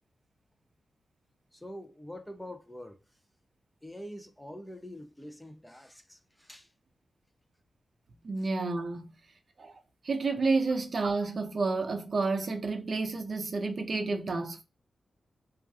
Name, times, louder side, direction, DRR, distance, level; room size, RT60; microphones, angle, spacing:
voice 1, 1.5-3.0 3.8-6.7 8.4-8.5, equal, 10° left, 0.6 m, -45 dB
voice 2, 8.2-9.1 9.6-9.7 10.0-14.6, right 3 dB, 55° right, 0.6 m, -30 dB
2.4 x 2.2 x 2.5 m
cardioid pair, 50°, 0 cm